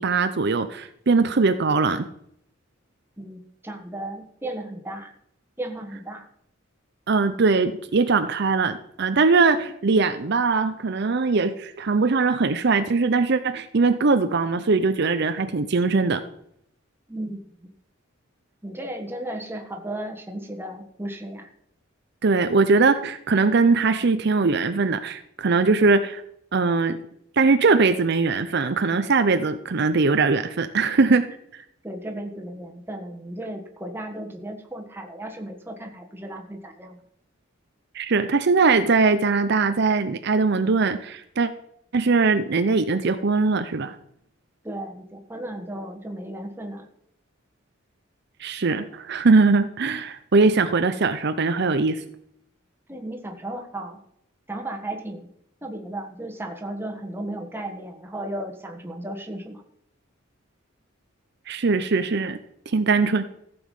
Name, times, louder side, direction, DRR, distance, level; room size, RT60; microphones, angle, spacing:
voice 1, 0.0-2.1 7.1-16.2 22.2-26.2 26.5-27.0 27.4-31.3 37.9-41.5 41.9-44.0 48.4-52.0 61.5-62.4 62.7-63.2, right 4 dB, 55° right, 9 dB, 0.6 m, -21 dB
voice 2, 3.2-5.1 5.6-6.3 17.1-17.7 18.6-21.5 31.8-37.0 44.6-46.9 52.9-54.0 54.5-55.3 55.6-59.6, right 1 dB, 10° right, 3 dB, 1.4 m, -35 dB
15.0 x 7.0 x 5.5 m, 0.72 s
head